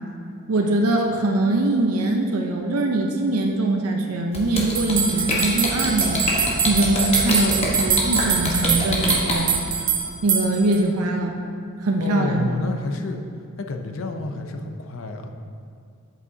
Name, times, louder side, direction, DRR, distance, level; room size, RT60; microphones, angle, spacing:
voice 1, 0.5-9.6 10.2-11.4 11.8-12.5, right 2 dB, 85° right, 2 dB, 0.6 m, -22 dB
sound 1, 4.3-9.3, left 2 dB, 30° left, 1.1 m, -24 dB
sound 2, 4.8-10.8, right 7 dB, 40° right, 0.7 m, -24 dB
voice 2, 12.0-13.2 13.6-15.3, left 2 dB, 60° left, 5 dB, 0.6 m, -29 dB
8.2 x 7.6 x 2.7 m, 2.4 s
head